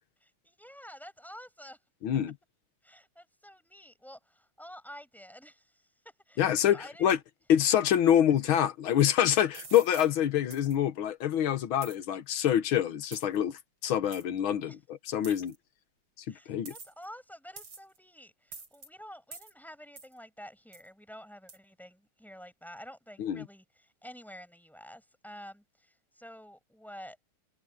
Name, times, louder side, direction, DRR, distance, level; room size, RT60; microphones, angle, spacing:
voice 1, 0.2-1.8 2.8-7.1 14.7-14.8 16.3-27.2, equal, ahead, 7.5 m, -49 dB
voice 2, 2.0-2.3 6.4-7.2 7.5-14.7 15.1-15.5 16.3-16.7 23.2-23.4, left 10 dB, 70° left, 1.9 m, -26 dB
sound 1, 9.5-10.1 10.5-10.8 11.8-12.0 13.1-13.4 14.1-14.2 15.2-15.6 16.7-17.1 17.6-18.0 18.5-18.9 19.3-19.5 20.0-20.1 20.7-20.9 21.5-21.6, right 3 dB, 70° right, 5.9 m, -46 dB
omnidirectional pair, 2.4 m